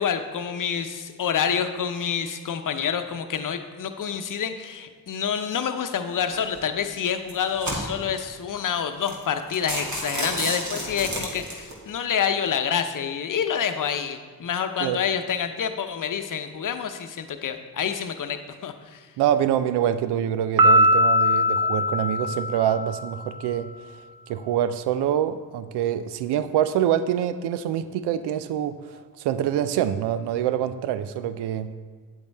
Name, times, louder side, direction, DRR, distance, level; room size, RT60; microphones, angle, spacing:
voice 1, 0.0-19.1, left 7 dB, 55° left, 8 dB, 0.8 m, -28 dB
sound 1, 6.3-6.6 7.2-8.2 8.7-8.8 9.1-9.2 9.5-11.7, right 1 dB, 45° right, 2.5 m, -31 dB
voice 2, 19.2-23.7 24.3-28.8 29.2-31.7, right 10 dB, 85° right, 13 dB, 0.5 m, -25 dB
Piano, 20.6-23.2, left 1 dB, 60° right, 1.0 m, -20 dB
9.0 x 8.1 x 3.5 m, 1.5 s
supercardioid pair, 45°, 39 cm